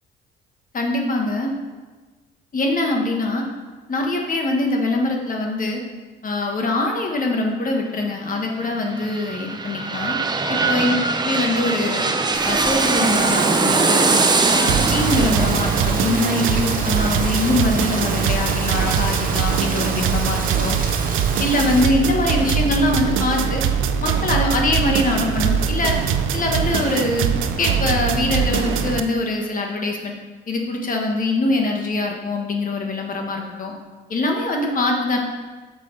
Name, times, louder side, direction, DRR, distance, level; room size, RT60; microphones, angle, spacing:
voice 1, 0.7-1.5 2.5-3.4 3.9-5.8 6.2-10.2 10.5-10.9 11.2-12.1 12.4-14.1 14.5-20.8 21.4-23.6 24.0-26.0 26.3-27.3 27.6-30.1 30.5-33.7 34.1-35.2, left 2 dB, 45° left, 1 dB, 1.4 m, -23 dB
sound 1, 8.7-18.3 18.8-18.9, right 3 dB, 20° right, 0.6 m, -22 dB
Rain, 12.3-21.9, right 3 dB, 45° right, 1.1 m, -29 dB
sound 2, 14.7-29.0, right 7 dB, 80° right, 0.5 m, -22 dB
6.8 x 4.8 x 5.2 m, 1.3 s
cardioid pair, 90°, 20 cm